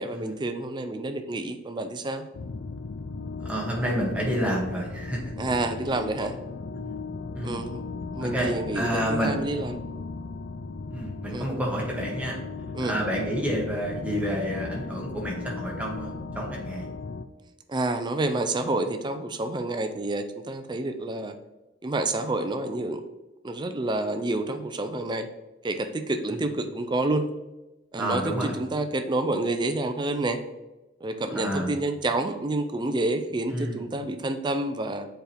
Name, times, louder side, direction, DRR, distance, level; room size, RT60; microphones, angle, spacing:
voice 1, 0.0-2.3 5.4-6.4 7.4-7.8 8.1-9.8 11.3-11.5 12.7-13.0 17.7-21.4 21.8-23.0 23.4-25.3 25.6-27.3 27.9-30.4 31.0-35.1, right 2 dB, 25° right, 8 dB, 0.5 m, -28 dB
sound 1, 2.3-17.2, left 3 dB, 65° left, 0.4 m, -37 dB
voice 2, 3.4-5.2 6.8-7.0 7.3-7.6 8.2-9.3 10.9-12.4 12.8-16.9 26.3-26.4 27.9-28.6 31.3-31.7 33.5-33.8, equal, 5° right, -3 dB, 1.4 m, -29 dB
6.8 x 4.4 x 3.4 m, 1.0 s
head